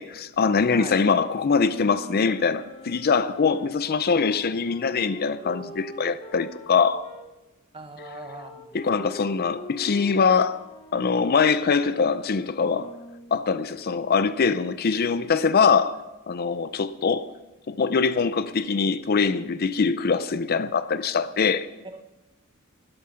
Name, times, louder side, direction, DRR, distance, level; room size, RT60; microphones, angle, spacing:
voice 1, 0.0-7.0 8.7-10.6 10.9-12.9 13.3-16.0 16.3-17.3 17.7-21.7, left 5 dB, 50° left, 0.5 m, -23 dB
sound 1, 1.4-7.3 8.0-13.4, left 1 dB, 30° left, 1.2 m, -43 dB
voice 2, 7.7-8.8 21.8-22.0, right 3 dB, 25° right, 1.2 m, -40 dB
12.5 x 12.5 x 5.7 m
head